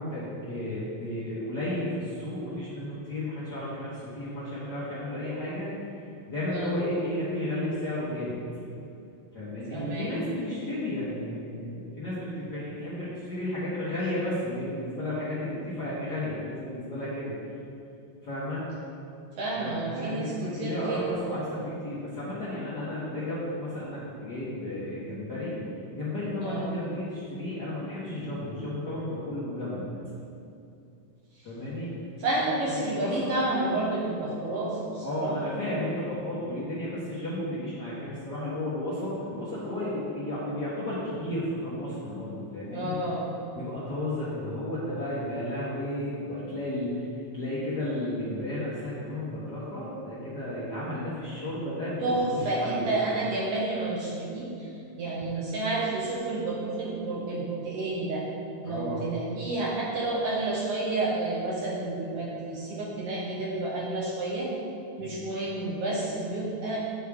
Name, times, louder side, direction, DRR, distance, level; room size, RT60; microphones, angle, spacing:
voice 1, 0.0-5.7 6.3-8.4 9.3-17.3 18.2-18.6 19.5-25.6 25.9-29.9 31.4-31.9 32.6-33.1 35.0-43.0 43.5-47.1 47.3-52.9 58.6-59.1 65.0-65.2, left 1 dB, 50° left, -9 dB, 1.3 m, -33 dB
voice 2, 6.5-6.8 9.7-10.1 19.4-21.1 26.4-26.8 32.2-35.3 42.7-43.2 52.0-54.7 55.0-58.2 58.6-64.5 65.0-66.8, right 2 dB, 65° right, -4 dB, 1.7 m, -30 dB
8.2 x 6.4 x 3.5 m, 2.6 s
omnidirectional pair, 3.4 m